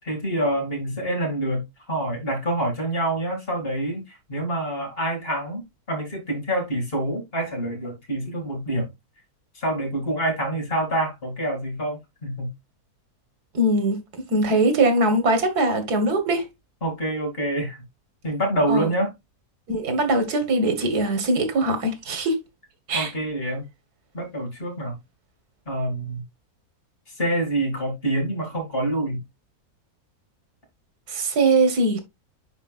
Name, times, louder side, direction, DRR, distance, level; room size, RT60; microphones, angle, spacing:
voice 1, 0.1-8.9 9.5-12.5 16.8-17.8 18.2-19.1 22.9-23.6 24.1-24.9 25.7-26.2 27.2-29.2, right 1 dB, 40° left, 2.4 m, -26 dB
voice 2, 13.5-14.0 14.3-16.5 18.7-18.9 19.7-22.4 22.9-23.1 31.1-32.0, right 2 dB, 90° right, 1.9 m, -21 dB
10.0 x 4.3 x 2.4 m
omnidirectional pair, 1.6 m